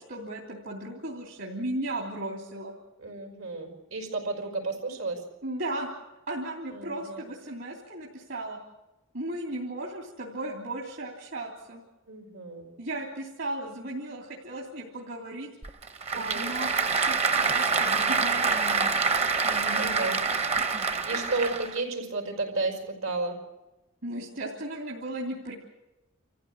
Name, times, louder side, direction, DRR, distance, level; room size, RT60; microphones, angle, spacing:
voice 1, 0.0-2.8 5.4-5.9 6.3-8.6 9.1-11.8 12.8-15.5 16.1-18.9 19.4-20.2 24.0-25.5, right 1 dB, 65° right, -2 dB, 3.2 m, -36 dB
voice 2, 3.0-5.2 6.7-7.2 12.1-12.7 16.1-16.5 19.7-20.2 20.8-23.4, right 3 dB, 80° right, 1 dB, 5.3 m, -32 dB
Applause / Crowd, 15.6-21.8, right 4 dB, 30° right, 0.8 m, -26 dB
27.5 x 14.5 x 8.6 m, 1.0 s
head